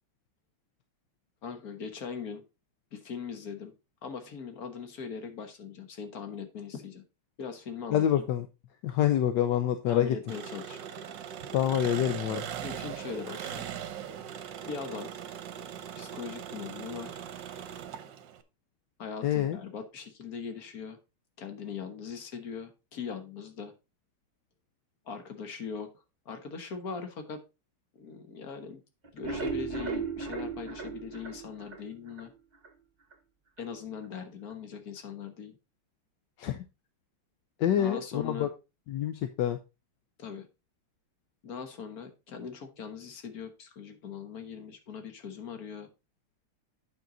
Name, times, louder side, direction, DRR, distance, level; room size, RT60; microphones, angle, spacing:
voice 1, 1.4-2.4 2.9-3.7 4.0-7.0 7.4-8.2 9.9-10.8 12.6-13.7 14.6-15.1 16.0-17.2 19.0-21.0 21.4-23.7 25.0-25.9 26.2-27.4 27.9-28.8 29.1-32.3 33.6-35.6 37.8-38.5 40.2-40.5 41.4-45.9, left 6 dB, 45° left, 7 dB, 1.6 m, -40 dB
voice 2, 7.9-8.5 8.8-10.2 11.5-12.4 19.2-19.6 36.4-36.6 37.6-38.5 38.9-39.6, left 10 dB, 70° left, 9 dB, 1.1 m, -26 dB
Engine, 10.3-18.4, right 9 dB, 65° right, 1.4 m, -40 dB
sound 1, 29.0-32.3 32.6-32.7 33.1-33.2 33.6-33.7, right 5 dB, 35° right, 0.7 m, -36 dB
8.8 x 6.0 x 3.9 m, 0.27 s
omnidirectional pair, 2.4 m